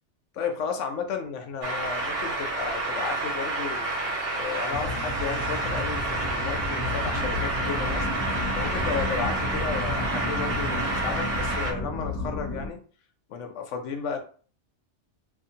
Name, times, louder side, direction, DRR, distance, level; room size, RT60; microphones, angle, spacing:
voice 1, 0.3-4.0 4.3-12.8 13.3-14.2, left 6 dB, 80° left, 4 dB, 1.0 m, -33 dB
sound 1, 1.6-11.7, right 2 dB, 80° right, 1.2 m, -29 dB
sound 2, 4.7-12.7, left 2 dB, 30° left, 1.1 m, -32 dB
2.7 x 2.6 x 2.7 m, 0.42 s
omnidirectional pair, 1.2 m